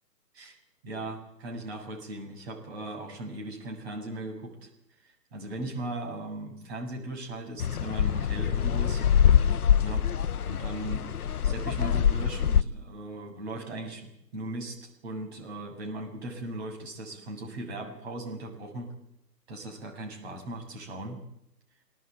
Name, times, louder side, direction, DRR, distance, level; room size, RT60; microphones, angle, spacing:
voice 1, 0.8-4.7 5.0-9.0 9.8-10.1 10.5-11.1 11.4-18.9 19.5-21.2, right 1 dB, 40° right, 2 dB, 7.4 m, -38 dB
sound 1, 7.6-12.6, left 8 dB, 65° left, 0.9 m, -24 dB
24.0 x 19.0 x 9.2 m, 0.80 s
figure-of-eight pair, 150°, 49 cm